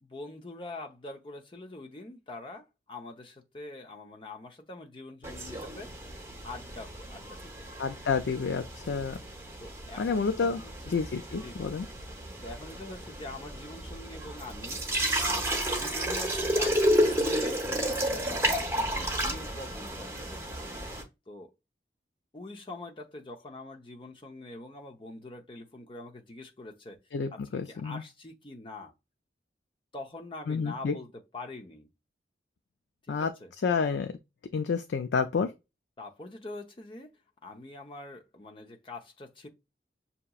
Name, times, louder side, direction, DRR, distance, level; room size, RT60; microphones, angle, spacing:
voice 1, 0.0-6.0 6.4-7.6 8.7-9.1 9.6-11.0 11.3-11.7 12.1-14.8 15.2-20.7 21.3-21.5 22.3-27.0 27.3-28.9 29.9-31.9 33.1-33.5 36.0-37.1 37.4-39.5, left 2 dB, 30° left, 0.7 m, -44 dB
sound 1, 5.2-21.0, equal, 15° right, 1.0 m, -32 dB
voice 2, 7.8-9.2 10.0-10.6 10.9-11.8 27.1-28.0 30.5-30.9 33.1-33.3 33.6-34.1 34.5-35.5, left 5 dB, 85° left, 0.4 m, -29 dB
6.5 x 2.9 x 2.3 m
head